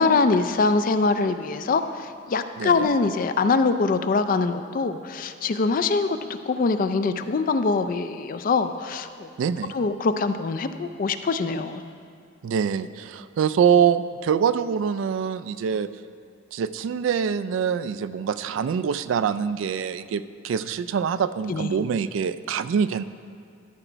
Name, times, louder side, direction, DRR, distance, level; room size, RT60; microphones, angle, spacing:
voice 1, 0.0-6.2 6.5-9.3 9.7-11.8 21.5-21.7, left 4 dB, 45° left, 10 dB, 0.3 m, -23 dB
voice 2, 9.4-9.7 12.4-15.9 16.5-23.0, right 7 dB, 80° right, 14 dB, 0.3 m, -24 dB
13.0 x 5.0 x 4.5 m, 2.2 s
head